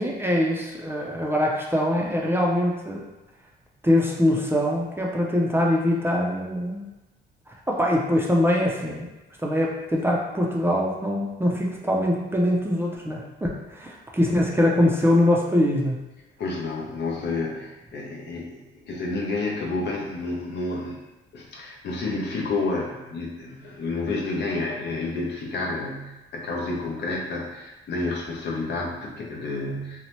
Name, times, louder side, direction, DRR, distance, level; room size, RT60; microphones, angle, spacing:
voice 1, 0.0-3.0 3.8-6.9 7.7-9.1 9.4-16.0, left 1 dB, 10° right, -2 dB, 0.4 m, -23 dB
voice 2, 16.4-21.0 21.3-30.0, left 3 dB, 60° left, -2 dB, 0.7 m, -30 dB
2.8 x 2.1 x 3.0 m, 1.1 s
cardioid pair, 90°, 20 cm